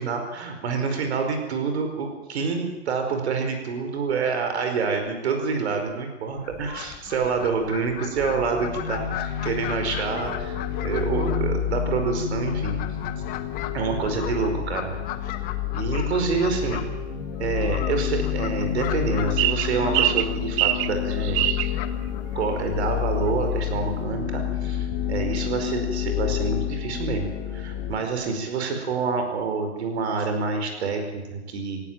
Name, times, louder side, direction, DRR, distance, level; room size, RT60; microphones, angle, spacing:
voice 1, 0.0-12.8 13.7-14.9 15.7-16.8 17.4-21.5 22.3-31.8, right 5 dB, 75° right, 5 dB, 5.1 m, -27 dB
Fowl, 6.4-23.7, left 12 dB, 25° left, 1.4 m, -38 dB
sound 1, 8.2-28.0, left 10 dB, 55° left, 3.0 m, -29 dB
sound 2, 19.4-21.7, right 15 dB, 30° right, 0.7 m, -23 dB
18.5 x 16.0 x 9.0 m, 1.1 s
hypercardioid pair, 150°, 33 cm